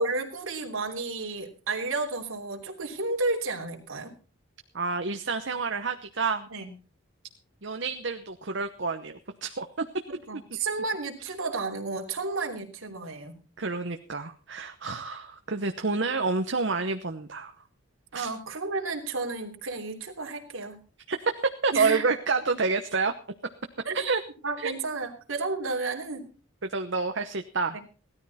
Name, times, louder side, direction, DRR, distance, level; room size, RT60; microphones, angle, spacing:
voice 1, 0.0-4.1 6.5-6.7 10.1-13.4 18.1-20.8 21.7-22.1 23.8-24.0 24.4-26.3 27.7-27.8, right 3 dB, 85° right, 3 dB, 3.2 m, -32 dB
voice 2, 4.7-6.5 7.6-9.8 13.6-17.5 18.1-18.3 21.1-21.3 21.6-23.1 23.9-24.2 24.6-24.7 26.7-27.8, right 4 dB, 60° right, 7 dB, 1.0 m, -28 dB
17.5 x 13.0 x 4.2 m, 0.38 s
head